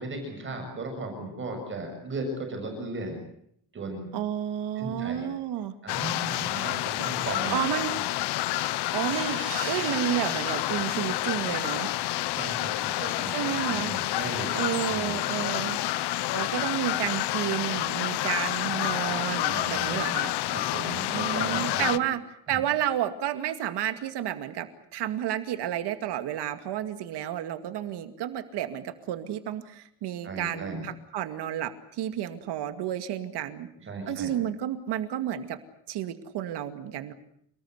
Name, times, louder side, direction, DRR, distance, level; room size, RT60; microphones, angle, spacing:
voice 1, 0.0-3.2 3.7-4.1 4.8-5.3 5.8-7.8 12.3-14.6 14.9-15.2 19.5-20.0 20.5-21.9 22.5-22.6 30.2-30.9 33.8-34.3, right 2 dB, 30° right, 4 dB, 7.0 m, -36 dB
voice 2, 4.1-5.7 7.5-7.9 8.9-11.9 13.3-13.9 14.5-15.8 16.3-20.3 21.1-22.2 22.5-33.7 34.1-35.6 35.9-37.1, right 11 dB, 80° right, 8 dB, 2.3 m, -31 dB
sound 1, 5.9-22.0, left 15 dB, 75° left, 1.0 m, -29 dB
sound 2, 8.9-11.2 11.6-11.7 12.1-12.2, right 9 dB, 55° right, 3.6 m, -41 dB
28.0 x 20.5 x 8.1 m, 0.70 s
cardioid pair, 175°, 40 cm